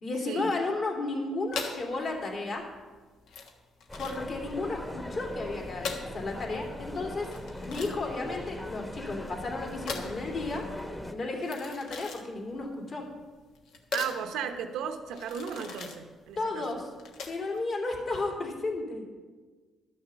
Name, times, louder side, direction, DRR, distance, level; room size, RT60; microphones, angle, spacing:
voice 1, 0.0-2.7 4.0-7.3 7.6-10.7 11.1-13.1 16.4-16.9 17.3-19.0, left 3 dB, 50° left, 0 dB, 2.8 m, -33 dB
sound 1, 1.5-17.6, left 5 dB, 85° left, 1.3 m, -41 dB
sound 2, 3.9-11.1, left 1 dB, 15° left, 1.1 m, -40 dB
voice 2, 13.9-16.6, right 7 dB, 90° right, 7 dB, 0.9 m, -35 dB
12.0 x 6.5 x 6.9 m, 1.4 s
cardioid pair, 90°, 0 cm